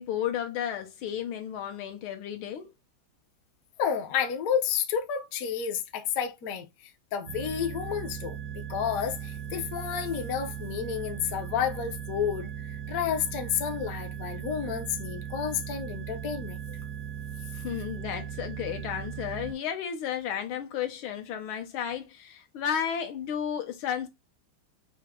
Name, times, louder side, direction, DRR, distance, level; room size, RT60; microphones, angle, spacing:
voice 1, 0.0-2.7 17.5-24.1, left 9 dB, 85° left, 1.6 m, -33 dB
voice 2, 3.8-16.6, left 8 dB, 65° left, 0.9 m, -31 dB
sound 1, 7.3-19.5, right 9 dB, 75° right, 1.0 m, -38 dB
5.6 x 2.0 x 3.5 m
omnidirectional pair, 2.3 m